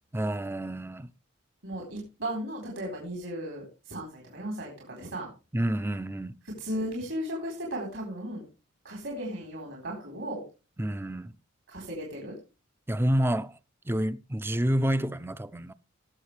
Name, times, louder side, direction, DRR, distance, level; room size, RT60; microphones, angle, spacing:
voice 1, 0.1-1.1 5.5-6.4 10.8-11.4 12.9-13.6 13.9-15.7, right 1 dB, 10° right, 0.4 m, -28 dB
voice 2, 1.6-5.3 6.6-8.4 8.8-10.4 11.7-12.3, equal, 70° right, 4.1 m, -36 dB
19.0 x 7.2 x 3.3 m
head